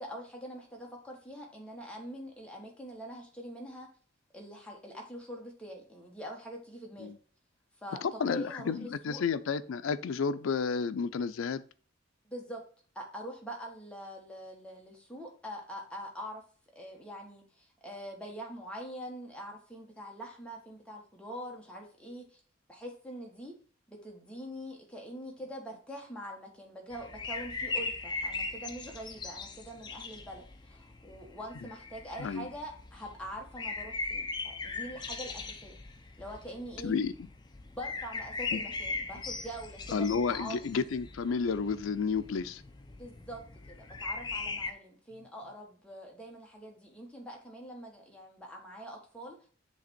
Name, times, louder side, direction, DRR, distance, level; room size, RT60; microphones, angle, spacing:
voice 1, 0.0-3.9 4.3-7.1 7.8-9.2 12.2-12.6 12.9-16.4 16.7-22.4 22.7-23.5 23.9-35.8 36.2-36.9 37.6-40.7 43.0-43.4 43.7-49.5, equal, 5° left, 1.4 m, -44 dB
voice 2, 8.0-11.6 32.2-32.5 36.8-37.1 38.5-38.6 39.9-42.6, left 5 dB, 85° left, 0.4 m, -31 dB
sound 1, 26.9-44.7, left 3 dB, 20° left, 0.6 m, -40 dB
7.7 x 3.4 x 4.2 m
head